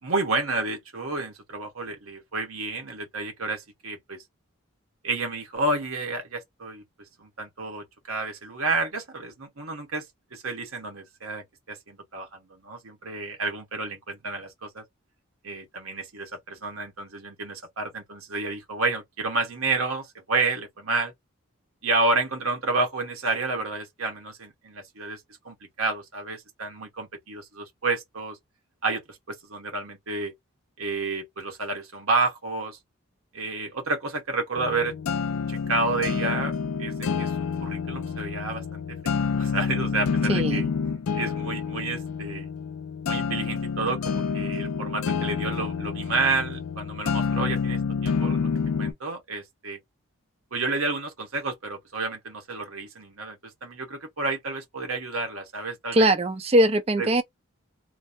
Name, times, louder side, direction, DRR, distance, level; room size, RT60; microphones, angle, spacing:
voice 1, 0.0-4.2 5.0-6.8 7.2-10.1 10.3-14.8 15.4-21.1 21.8-28.4 28.8-30.3 30.8-32.8 33.3-34.9 35.5-37.3 37.6-40.7 41.1-42.5 43.1-48.5 48.8-49.8 50.5-56.1 57.0-57.1, right 3 dB, 80° right, 1.3 m, -30 dB
sound 1, 34.6-48.9, left 5 dB, 85° left, 0.4 m, -28 dB
voice 2, 40.3-40.7 55.9-57.2, right 1 dB, 30° right, 0.4 m, -21 dB
3.0 x 2.0 x 2.6 m
head